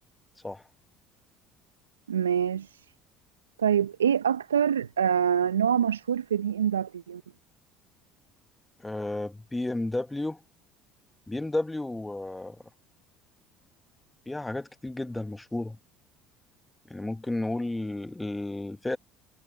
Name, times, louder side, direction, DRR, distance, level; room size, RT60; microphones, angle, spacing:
voice 1, 2.1-2.8 3.6-7.2, right 8 dB, 85° right, 1.0 m, -25 dB
voice 2, 8.8-10.4 11.3-12.6 14.2-15.8 16.9-19.0, left 2 dB, 10° left, 1.8 m, -32 dB
figure-of-eight pair, 60°, 0 cm